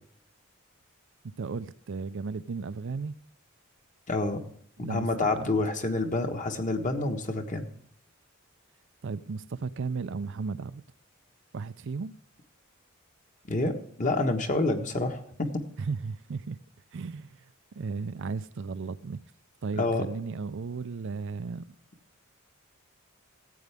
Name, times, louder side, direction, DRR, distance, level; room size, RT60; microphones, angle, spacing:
voice 1, 1.4-3.1 4.8-5.5 9.0-10.8 11.5-12.1 15.8-16.6 16.9-17.3 17.8-19.2 19.6-21.6, right 4 dB, 60° right, 0.5 m, -35 dB
voice 2, 4.1-4.5 4.8-7.7 13.5-15.5 19.7-20.0, left 2 dB, 35° left, 1.3 m, -28 dB
14.5 x 8.6 x 3.5 m
head